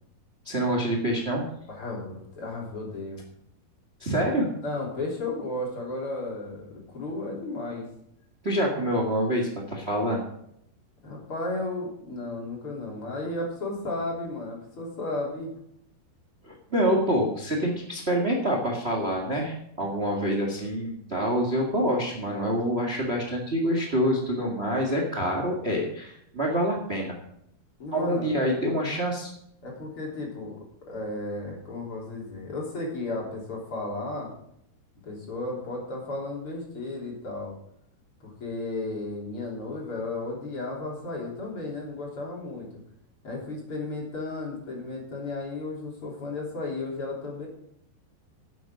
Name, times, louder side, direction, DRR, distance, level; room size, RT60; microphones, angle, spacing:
voice 1, 0.4-1.4 4.0-4.5 8.4-10.2 16.4-27.1 27.9-29.3, equal, 60° right, 1 dB, 0.6 m, -26 dB
voice 2, 1.7-3.2 4.6-7.9 11.0-15.5 27.8-28.3 29.6-30.6 30.9-34.3 35.0-37.5 38.2-42.7 43.2-47.5, left 2 dB, 35° left, -2 dB, 4.0 m, -34 dB
11.0 x 8.5 x 6.3 m, 0.74 s
omnidirectional pair, 4.8 m